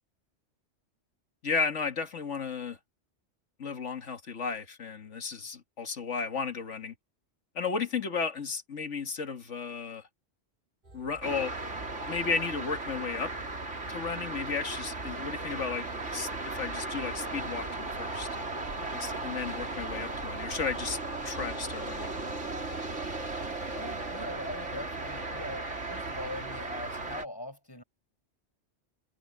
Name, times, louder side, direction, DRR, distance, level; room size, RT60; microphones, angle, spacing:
voice 1, 1.4-2.8 3.6-6.9 7.6-10.0 10.9-11.5 12.1-13.3 13.9-15.9 16.1-18.3 18.9-21.0 21.2-22.1, left 5 dB, 75° left, 2.0 m, -34 dB
sound 1, 10.8-24.2, right 1 dB, 40° right, 3.9 m, -52 dB
sound 2, 11.2-27.3, right 2 dB, 75° right, 3.7 m, -36 dB
voice 2, 23.7-27.8, left 1 dB, 20° left, 5.1 m, -41 dB
omnidirectional pair, 1.2 m